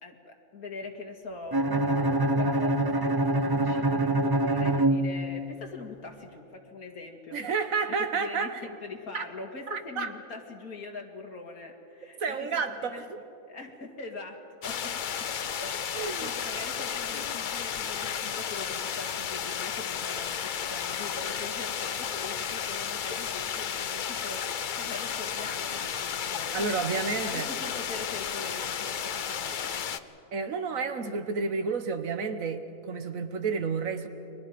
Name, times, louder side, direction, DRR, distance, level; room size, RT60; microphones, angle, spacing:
voice 1, 0.0-7.4 7.6-12.6 12.9-13.0 13.5-14.4 14.6-15.3 15.5-15.9 16.2-26.8 27.2-30.0, left 3 dB, 80° left, 2 dB, 2.7 m, -42 dB
Bowed string instrument, 1.5-5.6, right 1 dB, 35° right, 0.4 m, -25 dB
voice 2, 7.3-8.6 9.1-9.2 9.7-10.1 12.2-13.2 15.9-16.3 26.5-27.5 30.3-34.1, right 5 dB, 65° right, 9 dB, 1.6 m, -30 dB
sound 1, 14.6-30.0, left 7 dB, 50° left, 0.6 m, -33 dB
30.0 x 23.0 x 5.2 m, 2.8 s
omnidirectional pair, 1.5 m